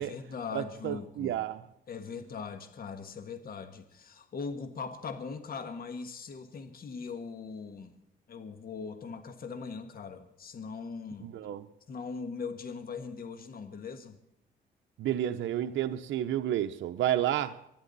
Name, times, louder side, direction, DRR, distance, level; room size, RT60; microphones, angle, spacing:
voice 1, 0.0-1.4 1.9-7.9 8.3-11.3 11.9-14.2, left 5 dB, 50° left, 1.5 m, -40 dB
voice 2, 0.5-1.6 11.2-11.7 15.0-17.7, right 11 dB, 75° right, 0.7 m, -31 dB
24.5 x 10.5 x 4.1 m
cardioid pair, 90°, 20 cm